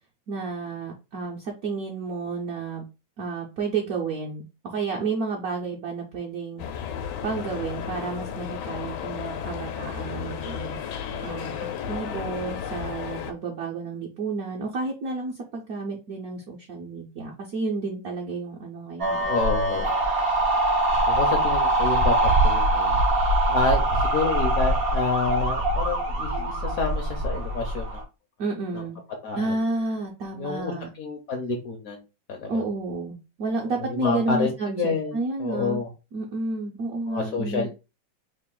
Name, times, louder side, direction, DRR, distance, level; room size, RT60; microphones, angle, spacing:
voice 1, 0.3-2.8 3.2-6.6 7.2-11.5 11.9-19.3 28.4-29.0 29.3-30.9 32.5-35.8 36.1-37.7, right 3 dB, 65° right, -1 dB, 0.9 m, -31 dB
sound 1, 6.6-13.3, left 8 dB, 90° left, 1.4 m, -33 dB
sound 2, 19.0-28.0, right 1 dB, 80° right, 0.5 m, -23 dB
voice 2, 19.2-19.9 21.1-22.9 23.5-28.0 28.7-28.8 29.2-29.5 30.4-32.0 32.3-32.6 33.8-35.9 37.1-37.7, left 4 dB, 65° left, 3 dB, 0.9 m, -28 dB
3.3 x 2.5 x 3.7 m, 0.29 s
omnidirectional pair, 2.1 m